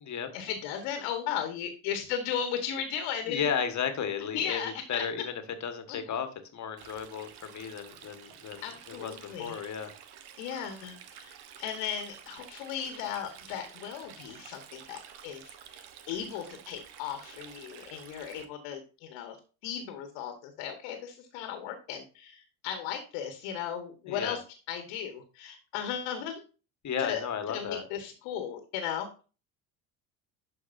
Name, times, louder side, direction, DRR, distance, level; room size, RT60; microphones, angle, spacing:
voice 1, 0.3-3.4 4.3-5.0 5.9-6.0 8.6-9.6 10.4-19.4 19.6-24.4 24.7-26.4 27.0-29.1, left 8 dB, 65° left, 6 dB, 1.6 m, -36 dB
voice 2, 3.3-9.9 24.1-24.4 26.8-27.8, left 7 dB, 35° left, 8 dB, 1.6 m, -34 dB
Stream, 6.8-18.4, right 9 dB, 55° right, 1.3 m, -50 dB
11.5 x 4.6 x 2.7 m, 0.34 s
hypercardioid pair, 65°, 47 cm